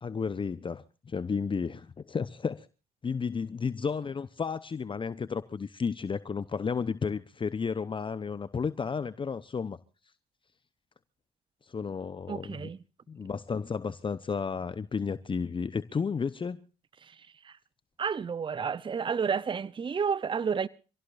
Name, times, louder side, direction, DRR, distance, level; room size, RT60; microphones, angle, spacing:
voice 1, 0.0-2.7 3.0-9.8 11.6-12.7 13.1-16.6, left 5 dB, 30° left, 0.9 m, -32 dB
voice 2, 12.3-12.8 17.0-17.2 17.4-17.6 18.0-20.7, right 6 dB, 30° right, 0.7 m, -31 dB
26.5 x 17.0 x 2.6 m
hypercardioid pair, 55°, 16 cm